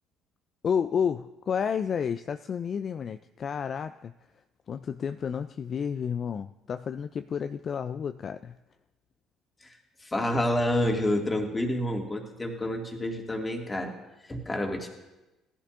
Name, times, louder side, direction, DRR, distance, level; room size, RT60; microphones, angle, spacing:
voice 1, 0.6-8.6, left 7 dB, 50° left, 10 dB, 0.3 m, -31 dB
voice 2, 9.6-13.9 14.2-14.9, left 1 dB, 20° left, 2 dB, 2.1 m, -29 dB
16.5 x 11.5 x 2.5 m, 1.0 s
hypercardioid pair, 60°, 0 cm